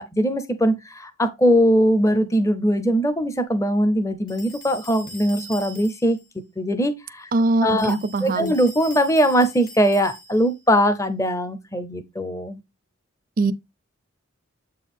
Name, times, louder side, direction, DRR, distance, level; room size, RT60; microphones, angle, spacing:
voice 1, 0.0-6.2 6.6-7.3 7.6-12.6, equal, 15° left, 0.6 m, -21 dB
sound 1, 4.3-6.2 7.7-10.6, equal, 40° left, 2.4 m, -42 dB
voice 2, 7.3-8.5 13.4-13.5, right 2 dB, 40° right, 0.4 m, -21 dB
7.7 x 4.5 x 3.5 m
head